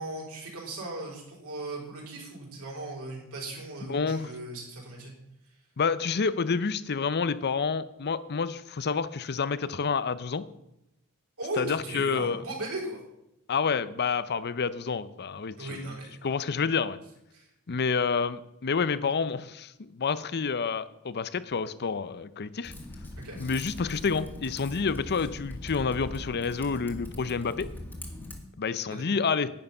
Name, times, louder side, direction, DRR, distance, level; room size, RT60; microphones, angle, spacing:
voice 1, 0.0-5.1 11.4-13.0 15.6-16.2 17.3-17.5 23.2-23.4 28.9-29.0, right 2 dB, 75° right, -2 dB, 4.7 m, -37 dB
voice 2, 3.9-4.3 5.8-10.4 11.6-12.4 13.5-15.8 16.2-17.0 17.7-22.7 23.4-27.7 28.6-29.5, left 5 dB, 50° left, 15 dB, 0.6 m, -29 dB
Typing, 22.6-28.4, left 1 dB, 10° left, 1.9 m, -41 dB
11.0 x 9.5 x 5.5 m, 0.84 s
head